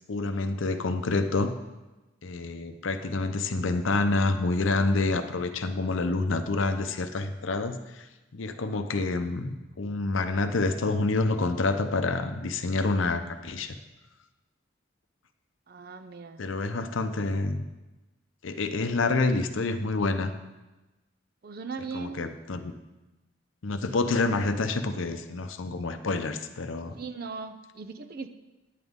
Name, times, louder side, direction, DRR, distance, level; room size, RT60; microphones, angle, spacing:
voice 1, 0.1-1.6 2.2-8.0 8.3-13.7 16.4-17.7 18.4-20.3 21.9-22.7 23.6-27.0, left 3 dB, 85° left, 8 dB, 0.7 m, -28 dB
voice 2, 15.7-16.5 21.4-22.3 26.9-28.3, right 4 dB, 50° right, 9 dB, 0.5 m, -38 dB
10.5 x 8.0 x 3.6 m, 1.1 s
head